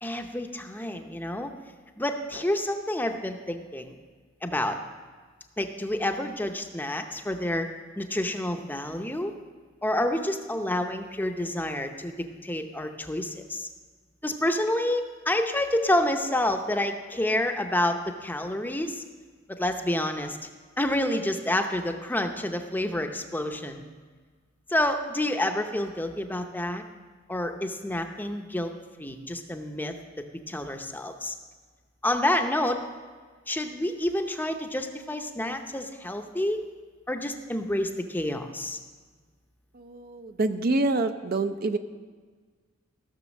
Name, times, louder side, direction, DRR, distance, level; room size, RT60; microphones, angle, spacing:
voice 1, 0.0-1.5 2.0-3.9 4.4-4.8 5.6-7.7 8.0-9.3 9.8-12.1 12.4-13.7 14.2-19.0 19.5-20.4 20.8-23.8 24.7-26.8 27.3-28.7 29.0-29.9 30.5-31.3 32.0-32.8 33.5-36.6 37.1-38.8, left 1 dB, 10° left, 5 dB, 0.7 m, -28 dB
voice 2, 39.7-41.8, right 2 dB, 45° right, 8 dB, 0.6 m, -26 dB
15.5 x 6.7 x 6.3 m, 1.5 s
head